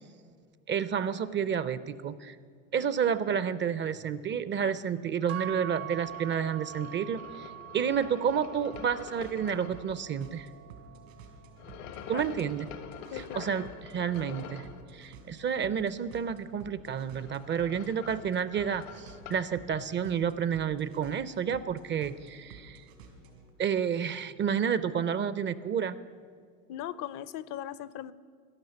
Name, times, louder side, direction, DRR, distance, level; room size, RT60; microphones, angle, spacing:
voice 1, 0.7-2.4 2.7-10.5 12.1-12.7 13.1-22.8 23.6-26.0, right 7 dB, 30° right, 15 dB, 0.4 m, -30 dB
sound 1, 3.9-23.5, right 3 dB, 85° right, 2.8 m, -53 dB
sound 2, 5.3-13.5, right 14 dB, 60° right, 0.7 m, -45 dB
sound 3, 5.4-9.9 11.6-14.8 16.9-19.5, left 7 dB, 80° left, 1.1 m, -47 dB
voice 2, 13.1-13.5 26.7-28.1, left 11 dB, 55° left, 17 dB, 0.6 m, -38 dB
12.0 x 11.0 x 6.9 m, 2.1 s
supercardioid pair, 90°, 39 cm